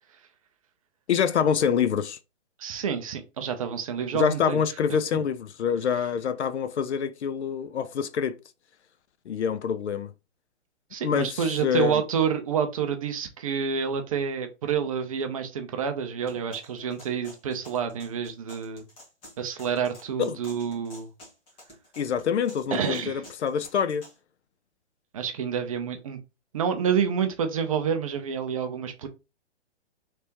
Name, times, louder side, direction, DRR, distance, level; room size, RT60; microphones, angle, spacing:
voice 1, 1.1-2.2 4.1-8.4 9.3-10.1 11.0-12.0 20.3-20.4 22.0-24.0, left 7 dB, 70° left, 0.6 m, -26 dB
voice 2, 2.6-4.6 10.9-18.8 19.4-21.1 22.7-23.2 25.1-26.2 26.5-29.1, right 7 dB, 30° right, 0.5 m, -28 dB
sound 1, 16.3-24.2, equal, 15° left, 1.4 m, -50 dB
3.4 x 3.3 x 2.8 m
hypercardioid pair, 145°, 35 cm